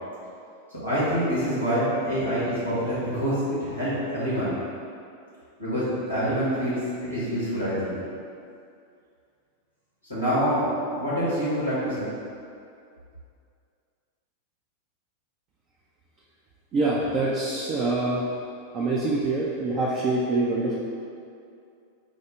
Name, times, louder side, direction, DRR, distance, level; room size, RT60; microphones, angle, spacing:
voice 1, 0.8-4.6 5.6-8.0 10.1-10.7 10.9-12.1, equal, 90° right, -11 dB, 1.5 m, -26 dB
voice 2, 16.7-18.3 18.7-20.8, right 2 dB, 35° right, -5 dB, 0.4 m, -25 dB
4.8 x 2.1 x 3.5 m, 2.4 s
figure-of-eight pair, 90°, 0 cm